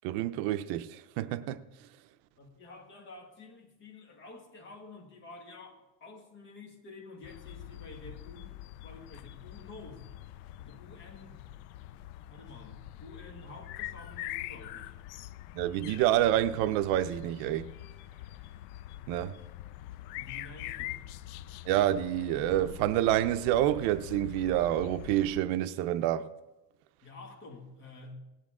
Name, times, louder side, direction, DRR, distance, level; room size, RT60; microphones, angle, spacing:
voice 1, 0.0-1.6 15.5-17.7 19.1-19.4 21.7-26.3, right 13 dB, 70° right, 0.6 m, -28 dB
voice 2, 2.4-10.1 10.6-11.5 12.3-15.0 20.1-21.0 27.0-28.1, left 2 dB, 30° left, 1.9 m, -50 dB
sound 1, 7.2-25.4, left 14 dB, 75° left, 0.5 m, -44 dB
18.0 x 9.9 x 3.7 m
cardioid pair, 170°, 37 cm